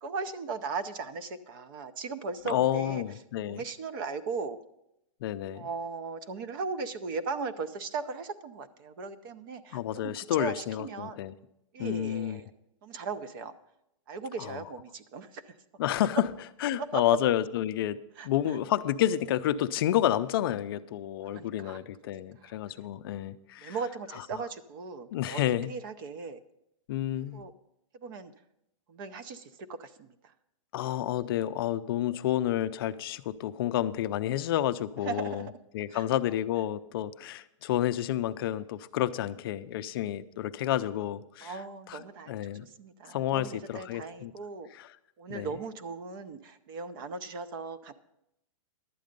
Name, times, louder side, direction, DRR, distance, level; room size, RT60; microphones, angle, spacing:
voice 1, 0.0-3.0 3.5-4.6 5.5-11.2 11.7-12.5 12.8-13.5 14.1-15.4 16.8-17.0 18.2-18.6 21.2-21.8 22.4-22.9 23.6-25.4 25.7-26.4 27.3-27.5 27.9-28.3 28.9-30.3 35.0-35.5 35.9-36.0 41.4-44.7 45.2-47.9, right 4 dB, 40° right, 11 dB, 0.6 m, -38 dB
voice 2, 2.4-3.6 5.2-5.7 9.7-11.3 11.8-12.4 14.4-14.6 15.8-16.2 16.6-18.0 18.2-23.8 25.1-25.7 26.9-27.4 30.7-35.5 35.7-41.6 41.9-42.0 42.3-42.7 43.1-44.3 44.8-44.9 45.3-45.5, left 12 dB, 45° left, 12 dB, 0.5 m, -30 dB
11.5 x 8.5 x 5.2 m, 0.83 s
hypercardioid pair, 165°, 17 cm